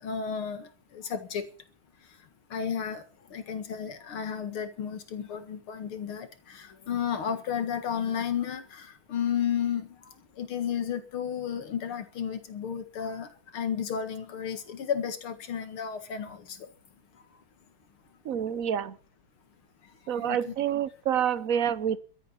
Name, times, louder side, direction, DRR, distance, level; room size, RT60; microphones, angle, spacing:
voice 1, 0.0-1.4 2.5-3.0 3.3-10.0 10.4-16.7 20.2-20.5, left 8 dB, 85° left, 2.7 m, -33 dB
voice 2, 18.2-18.9 20.1-22.0, right 9 dB, 55° right, 1.0 m, -28 dB
13.5 x 10.0 x 8.5 m
omnidirectional pair, 2.3 m